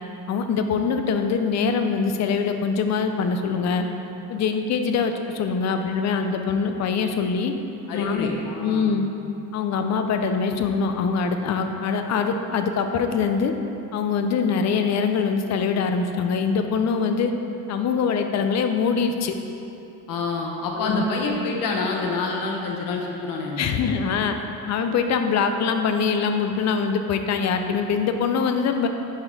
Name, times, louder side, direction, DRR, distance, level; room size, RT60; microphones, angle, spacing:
voice 1, 0.3-3.9 4.3-7.5 7.9-8.3 8.6-9.1 9.5-13.5 13.9-17.3 17.7-19.3 20.8-21.0 23.6-24.4 24.7-28.9, left 5 dB, 50° left, 6 dB, 0.5 m, -23 dB
voice 2, 7.9-8.8 20.1-23.9, left 3 dB, 70° left, 0 dB, 0.9 m, -27 dB
5.8 x 4.3 x 5.2 m, 2.9 s
cardioid pair, 140°, 34 cm